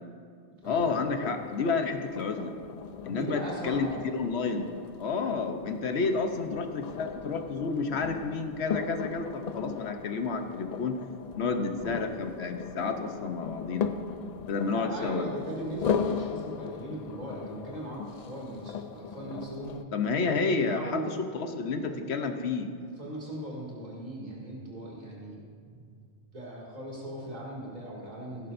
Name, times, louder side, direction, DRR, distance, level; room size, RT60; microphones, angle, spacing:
voice 1, 0.6-2.5 3.0-3.9 4.1-4.7 5.0-11.0 11.4-13.9 14.5-15.2 19.9-22.7, left 4 dB, 85° left, 6 dB, 1.1 m, -30 dB
sound 1, 0.6-19.8, left 6 dB, 55° left, 0.5 m, -38 dB
voice 2, 3.1-4.0 14.6-19.8 20.7-21.2 21.9-22.1 22.8-25.9 26.3-28.5, right 1 dB, 40° right, -4 dB, 2.6 m, -39 dB
18.0 x 11.0 x 2.6 m, 2.2 s
omnidirectional pair, 1.1 m